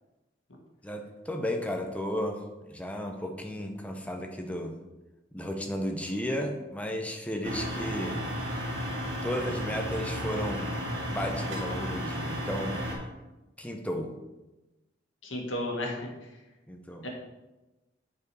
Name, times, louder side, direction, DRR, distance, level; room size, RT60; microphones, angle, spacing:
voice 1, 0.8-4.8 5.3-8.6 9.2-10.7 11.1-12.8 13.6-14.1 16.7-17.1, equal, 5° left, 3 dB, 0.8 m, -34 dB
sound 1, 7.4-12.9, equal, 80° right, 2.5 m, -33 dB
voice 2, 15.2-16.0 17.0-17.1, left 1 dB, 90° left, 0 dB, 1.7 m, -32 dB
8.2 x 4.8 x 4.8 m, 1.1 s
head